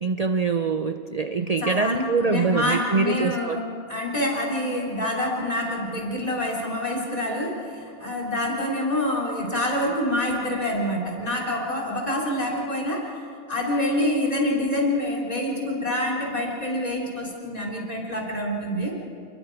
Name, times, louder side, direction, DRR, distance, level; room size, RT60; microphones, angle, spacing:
voice 1, 0.0-3.6, right 4 dB, 45° right, 8 dB, 0.5 m, -24 dB
voice 2, 1.6-7.6 8.0-13.0 13.5-18.9, left 1 dB, 25° left, -3 dB, 3.7 m, -26 dB
29.0 x 21.0 x 4.8 m, 2.4 s
omnidirectional pair, 1.5 m